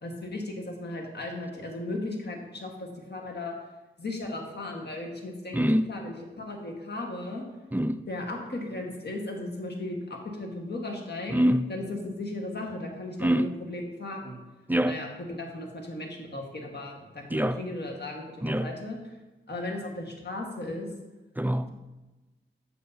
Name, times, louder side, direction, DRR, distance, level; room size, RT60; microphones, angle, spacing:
voice 1, 0.0-3.5 4.0-7.4 8.1-11.3 11.7-14.4 14.8-19.0 19.5-20.9, left 2 dB, 50° left, 1.5 m, -36 dB
voice 2, 5.5-5.9 7.7-8.0 11.3-11.7 13.2-13.5 14.7-15.0 17.3-17.6 18.4-18.7 21.4-21.7, equal, 10° right, 0.4 m, -25 dB
7.7 x 6.5 x 2.8 m
cardioid pair, 45°, 21 cm